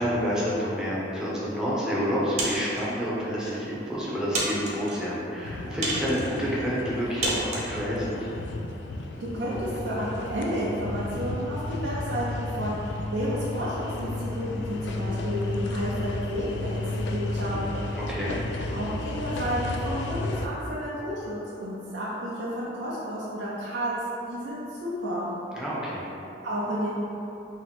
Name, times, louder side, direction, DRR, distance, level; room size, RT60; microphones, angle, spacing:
voice 1, 0.0-8.3 17.9-18.3 25.5-26.0, equal, 5° right, -8 dB, 0.8 m, -29 dB
sound 1, 2.4-2.9 3.6-3.7 4.3-5.0 5.8-6.3 7.2-7.7, right 2 dB, 40° right, 0.7 m, -30 dB
sound 2, 5.4-20.5, left 2 dB, 70° left, 0.3 m, -33 dB
voice 2, 9.2-17.7 18.7-23.9 24.3-25.3 26.4-27.0, equal, 75° right, -8 dB, 0.6 m, -31 dB
3.2 x 2.9 x 4.2 m, 2.9 s
head